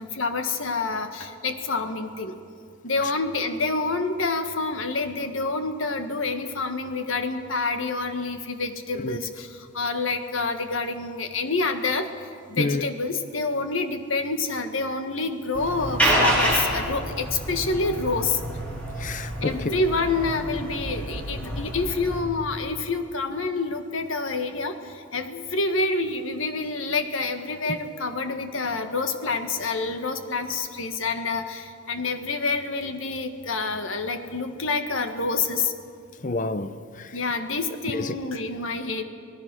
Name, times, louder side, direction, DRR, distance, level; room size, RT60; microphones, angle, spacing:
voice 1, 0.0-2.4 2.8-18.4 19.4-35.7 37.1-39.0, left 3 dB, 85° left, 1.7 m, -27 dB
sound 1, 15.5-22.2, right 1 dB, 5° left, 5.3 m, -28 dB
voice 2, 19.0-19.7 36.2-37.1 37.9-38.1, left 2 dB, 40° left, 0.7 m, -29 dB
25.0 x 19.0 x 6.3 m
head